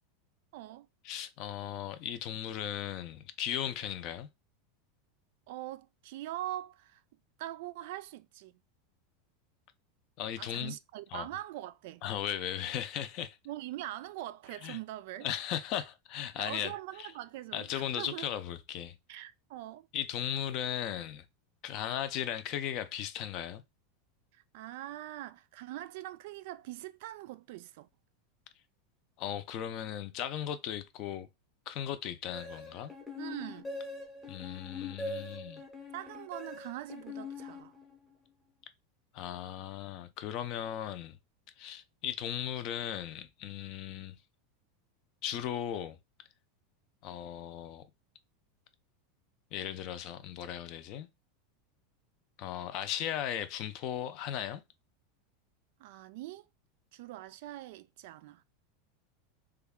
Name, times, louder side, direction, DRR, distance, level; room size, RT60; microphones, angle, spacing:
voice 1, 0.5-0.9 5.5-7.0 7.4-8.6 10.4-12.0 13.5-15.3 16.4-18.3 19.1-19.9 24.3-27.9 33.2-33.7 35.9-37.7 55.8-56.5 56.9-58.4, right 14 dB, 60° right, 0.3 m, -42 dB
voice 2, 1.0-4.3 10.2-10.7 11.1-11.3 12.0-13.4 14.6-14.8 15.2-16.7 17.0-17.1 17.5-19.2 19.9-21.2 21.6-23.6 29.2-31.3 31.7-32.9 34.3-35.6 39.1-41.2 41.6-44.2 45.2-46.0 47.0-47.8 49.5-51.1 52.4-54.6, left 10 dB, 45° left, 0.4 m, -37 dB
sound 1, 32.3-38.1, left 3 dB, 10° left, 0.7 m, -43 dB
3.2 x 2.3 x 3.5 m
supercardioid pair, 155°, 0 cm